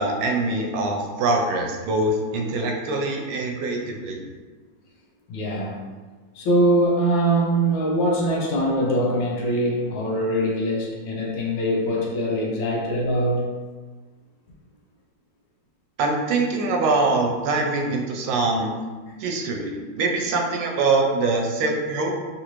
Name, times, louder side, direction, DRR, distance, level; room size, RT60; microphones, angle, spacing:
voice 1, 0.0-4.2 16.0-18.7 19.2-22.2, right 3 dB, 85° right, 2 dB, 1.4 m, -23 dB
voice 2, 5.3-5.8 6.3-13.4 19.1-19.2, right 1 dB, 75° left, -2 dB, 1.3 m, -22 dB
3.5 x 2.5 x 2.9 m, 1.4 s
omnidirectional pair, 2.2 m